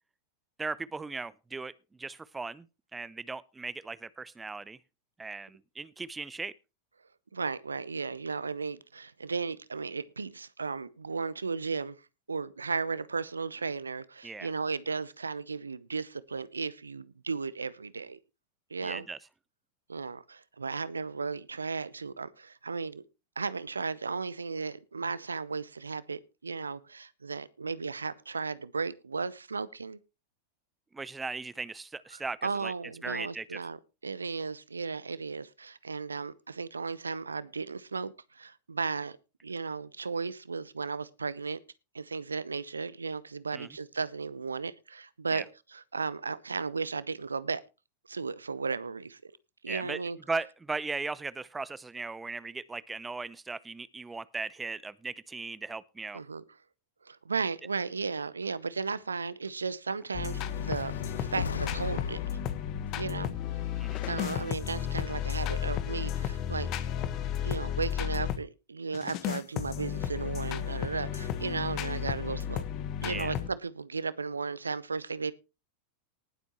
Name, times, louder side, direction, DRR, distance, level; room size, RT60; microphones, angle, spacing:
voice 1, 0.6-1.7 2.0-2.7 2.9-4.8 5.2-6.5 14.2-14.5 18.8-19.2 30.9-32.7 33.0-33.6 43.5-43.7 45.3-45.4 49.7-50.0 50.3-56.2 63.8-64.0 73.0-73.3, right 3 dB, 10° right, 0.7 m, -37 dB
voice 2, 7.3-12.0 12.3-18.2 18.7-19.0 19.9-23.0 23.4-30.0 32.1-33.8 34.0-39.2 39.4-41.6 41.9-45.4 45.7-47.6 48.1-49.3 49.6-50.2 56.1-56.4 57.0-60.9 61.2-62.2 63.0-63.3 64.0-66.7 67.4-72.6 73.0-75.3, right 4 dB, 75° right, 0.8 m, -35 dB
sound 1, 60.1-68.4 68.9-73.5, left 9 dB, 40° left, 1.3 m, -33 dB
sound 2, 60.3-64.5, left 6 dB, 70° left, 0.6 m, -38 dB
19.5 x 8.0 x 3.0 m
figure-of-eight pair, 90°, 0 cm